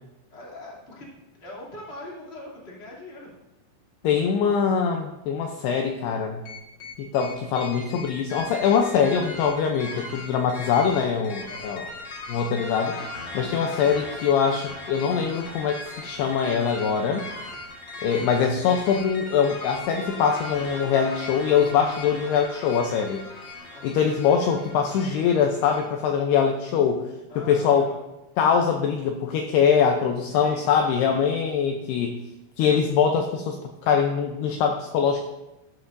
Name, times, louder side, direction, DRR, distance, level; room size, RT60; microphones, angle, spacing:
voice 1, 0.3-1.1 1.3-3.4 11.4-11.7 23.7-24.0 27.3-28.0 30.3-30.8 31.0-31.3, left 1 dB, 20° left, -6 dB, 2.0 m, -42 dB
voice 2, 4.0-6.4 7.0-11.9 12.3-13.0 13.3-17.2 18.0-23.2 23.8-27.9 28.4-32.2 32.6-35.3, left 7 dB, 85° left, 3 dB, 2.3 m, -23 dB
sound 1, 6.5-25.9, left 2 dB, 70° left, 1.4 m, -39 dB
13.0 x 12.5 x 2.6 m, 0.99 s
omnidirectional pair, 5.5 m